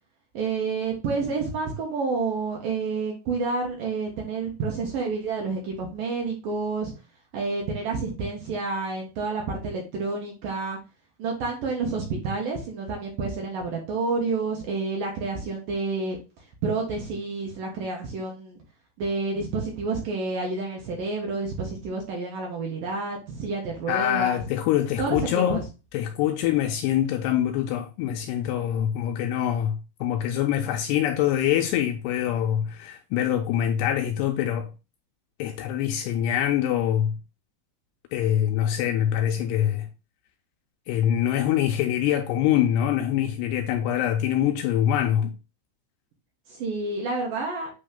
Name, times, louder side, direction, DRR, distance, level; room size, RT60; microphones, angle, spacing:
voice 1, 0.3-6.9 7.3-10.8 11.2-16.2 16.6-18.6 19.0-24.4 25.0-25.6 46.5-47.7, right 4 dB, 65° right, 2.3 m, -29 dB
voice 2, 23.9-25.6 25.9-34.7 35.4-37.2 38.1-39.9 40.9-45.3, left 11 dB, 85° left, 2.5 m, -24 dB
8.3 x 3.1 x 3.7 m
omnidirectional pair, 5.2 m